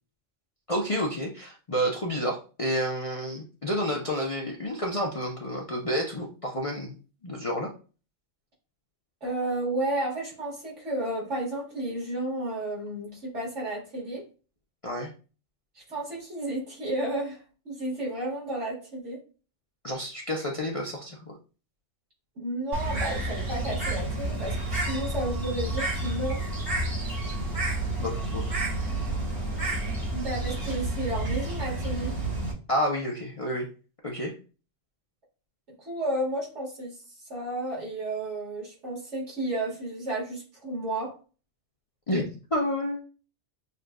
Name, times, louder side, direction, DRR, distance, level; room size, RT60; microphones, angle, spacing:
voice 1, 0.7-7.0 7.2-7.7 14.8-15.1 19.8-21.3 28.0-28.4 32.7-33.7 34.0-34.3 42.1-43.0, equal, 40° left, -1 dB, 0.5 m, -30 dB
voice 2, 9.2-14.2 15.9-17.4 17.7-19.2 22.4-26.4 30.1-32.2 35.8-36.9 37.3-41.1, right 1 dB, 70° right, -4 dB, 2.1 m, -32 dB
Bird, 22.7-32.5, right 2 dB, 50° right, 1.8 m, -30 dB
6.5 x 2.4 x 2.2 m, 0.35 s
omnidirectional pair, 1.3 m